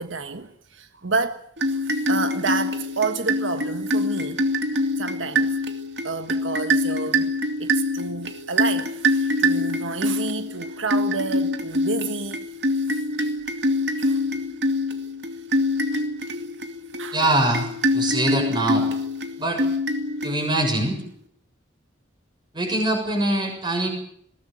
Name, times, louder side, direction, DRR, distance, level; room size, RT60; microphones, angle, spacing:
voice 1, 0.0-1.4 1.7-4.4 5.0-5.6 6.0-7.3 7.6-12.5 12.9-13.0 13.9-14.2 17.0-17.2, right 4 dB, 85° right, 1.4 m, -30 dB
sound 1, 1.6-20.8, left 1 dB, 65° right, 2.5 m, -25 dB
voice 2, 17.1-18.9 19.4-19.6 20.2-21.0 22.5-23.9, right 1 dB, 25° right, 6.7 m, -23 dB
21.0 x 18.0 x 9.1 m
head